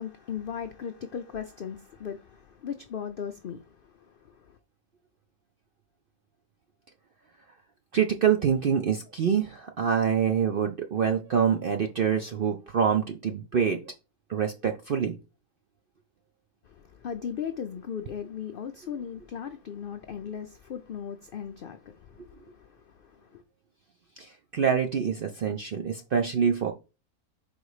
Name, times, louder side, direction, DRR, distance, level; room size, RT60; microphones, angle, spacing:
voice 1, 0.0-4.6 16.6-23.4, left 8 dB, 80° left, 0.4 m, -38 dB
voice 2, 7.9-13.8 14.3-15.1 24.2-24.3 24.5-26.7, right 7 dB, 65° right, 0.5 m, -25 dB
5.0 x 4.0 x 4.8 m
omnidirectional pair, 1.6 m